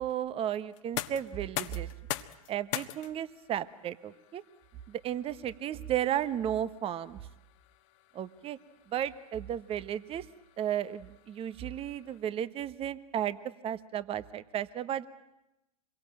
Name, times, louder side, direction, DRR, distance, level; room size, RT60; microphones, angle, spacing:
voice 1, 0.0-1.9 2.5-4.4 4.9-7.2 8.1-8.6 8.9-10.2 10.6-13.4 13.6-15.1, right 10 dB, 30° right, 15 dB, 1.3 m, -34 dB
sound 1, 0.7-12.5, left 16 dB, 55° left, 1.4 m, -44 dB
27.0 x 23.0 x 9.0 m, 0.91 s
hypercardioid pair, 100°, 19 cm